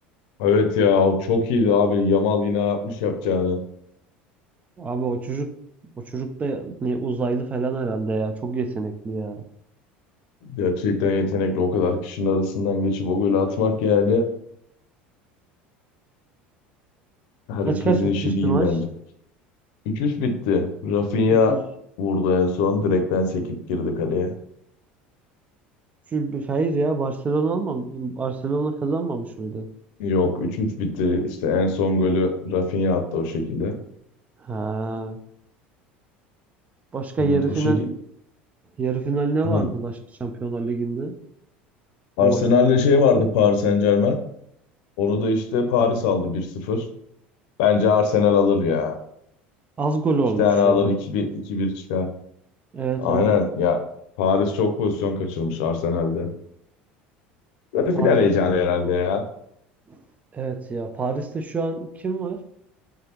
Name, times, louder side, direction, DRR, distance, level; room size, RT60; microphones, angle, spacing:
voice 1, 0.4-3.6 10.4-14.3 17.5-18.8 19.9-21.6 22.0-24.3 30.0-33.8 37.2-37.9 39.4-39.6 42.2-44.2 45.0-46.8 47.6-48.9 50.4-52.1 53.0-53.8 54.2-56.3 57.7-59.2, left 4 dB, 70° left, 7 dB, 0.6 m, -21 dB
voice 2, 4.8-5.5 6.0-9.5 17.6-18.8 21.3-21.6 26.1-29.7 34.4-35.2 36.9-37.9 38.8-41.2 42.2-42.4 49.8-50.9 52.7-53.4 57.9-58.2 59.9-60.0 60.3-62.4, right 4 dB, 25° right, 8 dB, 0.5 m, -26 dB
3.6 x 3.3 x 2.9 m, 0.72 s
hypercardioid pair, 80°, 5 cm